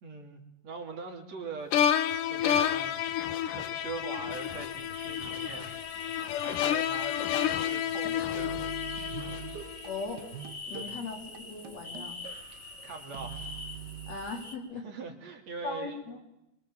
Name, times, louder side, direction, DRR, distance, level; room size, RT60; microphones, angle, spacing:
voice 1, 0.0-6.1 6.4-8.6 10.7-11.3 12.5-13.5 14.8-16.0, right 5 dB, 55° right, 3 dB, 3.9 m, -43 dB
sound 1, 1.7-9.9, left 10 dB, 80° left, 2.8 m, -30 dB
sound 2, 4.3-14.5, left 3 dB, 20° left, 2.4 m, -44 dB
sound 3, 7.8-14.2, right 10 dB, 85° right, 0.9 m, -44 dB
voice 2, 9.8-10.2 10.6-12.1 14.1-14.8 15.6-16.2, left 4 dB, 55° left, 2 dB, 5.1 m, -38 dB
26.0 x 24.5 x 7.5 m, 0.86 s
omnidirectional pair, 3.7 m